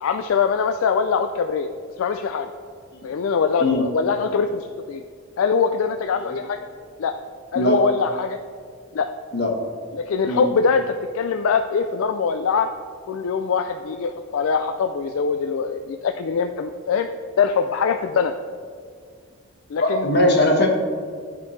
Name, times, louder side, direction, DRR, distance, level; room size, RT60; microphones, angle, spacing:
voice 1, 0.0-1.7 2.0-2.5 3.0-5.0 5.4-6.7 7.0-7.1 7.5-8.4 8.9-9.1 9.9-12.7 13.1-17.1 17.4-18.3 19.7-20.1, left 5 dB, 70° left, 6 dB, 0.3 m, -23 dB
voice 2, 19.8-20.7, left 1 dB, 50° left, 1 dB, 1.2 m, -19 dB
12.0 x 5.2 x 3.2 m, 2.1 s
head